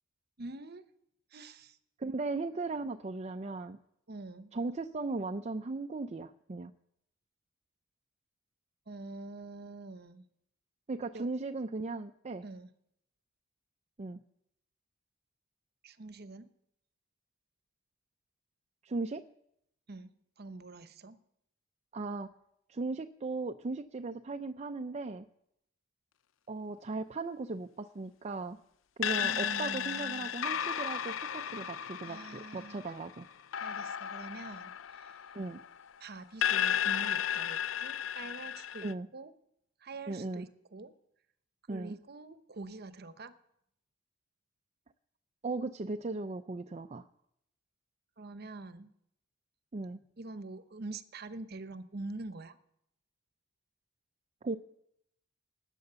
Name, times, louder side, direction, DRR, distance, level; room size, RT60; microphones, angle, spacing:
voice 1, 0.4-0.8 1.3-1.8 4.1-4.5 8.9-10.2 11.1-11.3 12.4-12.7 15.8-16.5 19.9-21.2 29.2-30.3 32.0-33.0 33.6-35.2 36.0-38.9 39.1-39.3 39.8-40.9 41.7-43.3 48.2-48.9 50.2-52.6, right 2 dB, 55° right, 13 dB, 0.9 m, -45 dB
voice 2, 2.0-3.8 4.5-6.7 10.9-12.4 14.0-14.2 18.8-19.2 21.9-22.3 22.7-25.2 26.5-28.6 29.0-33.3 35.3-35.6 38.8-39.1 40.1-40.5 41.7-42.0 45.4-47.1 49.7-50.0 54.4-54.6, right 3 dB, 35° right, 8 dB, 0.5 m, -37 dB
sound 1, 29.0-35.9 36.4-38.9, left 9 dB, 80° left, 0.5 m, -34 dB
18.5 x 9.0 x 6.8 m, 0.77 s
head